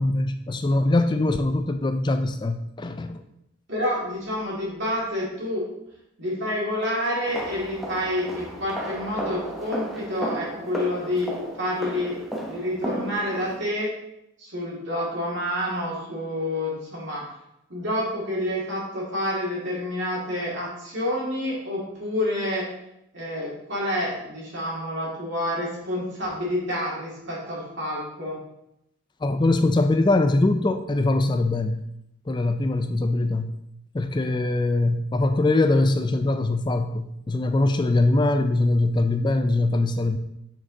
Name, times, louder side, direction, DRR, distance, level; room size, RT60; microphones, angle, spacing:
voice 1, 0.0-3.2 29.2-31.8 32.3-33.5 33.9-40.2, left 2 dB, 20° left, 8 dB, 0.3 m, -22 dB
voice 2, 3.7-5.7 6.2-13.9 14.4-17.2 17.7-22.7 23.1-28.4, left 1 dB, 55° right, -5 dB, 2.2 m, -28 dB
sound 1, 7.2-13.6, right 1 dB, ahead, 0.8 m, -33 dB
6.5 x 6.2 x 3.8 m, 0.83 s
head